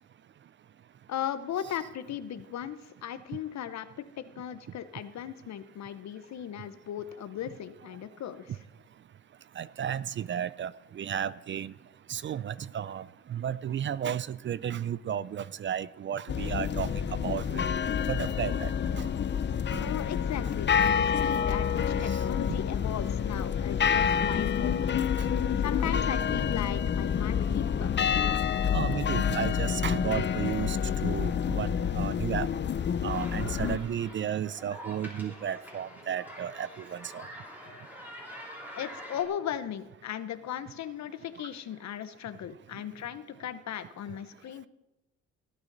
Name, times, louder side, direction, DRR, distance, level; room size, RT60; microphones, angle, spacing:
voice 1, 1.1-8.5 19.8-27.9 38.7-44.7, left 10 dB, 65° left, 13 dB, 0.9 m, -37 dB
voice 2, 9.6-11.7 12.1-13.0 13.3-17.6 18.1-19.1 19.7-19.9 22.1-22.2 25.2-25.3 28.7-31.7 31.9-32.5 33.0-37.2, right 9 dB, 40° right, 19 dB, 0.4 m, -33 dB
sound 1, 16.3-33.8, left 7 dB, 35° left, 0.6 m, -28 dB
sound 2, 33.1-39.3, equal, 5° right, 3.0 m, -45 dB
17.0 x 8.9 x 4.0 m, 0.97 s
cardioid pair, 90°, 30 cm